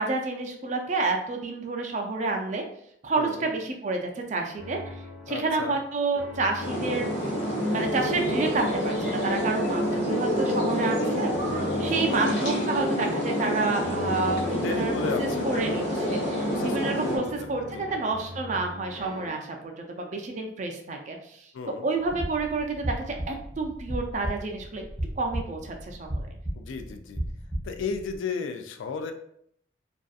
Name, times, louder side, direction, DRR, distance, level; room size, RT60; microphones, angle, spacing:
voice 1, 0.0-2.6 3.0-7.1 7.7-11.3 11.8-15.8 16.1-21.5 21.8-22.9 23.3-24.8 25.2-26.2, right 3 dB, 40° right, 2 dB, 0.3 m, -29 dB
voice 2, 3.2-3.5 5.3-5.8 11.7-12.3 14.5-15.9 16.5-17.5 17.7-17.9 21.5-21.9 26.5-27.2 27.6-29.1, left 5 dB, 80° left, 6 dB, 0.3 m, -34 dB
sound 1, 4.6-19.3, left 1 dB, 40° left, 0.9 m, -42 dB
sound 2, 6.6-17.2, equal, 65° left, 0.9 m, -27 dB
sound 3, 22.0-28.2, right 1 dB, 5° left, 0.7 m, -35 dB
2.6 x 2.3 x 2.3 m, 0.69 s
head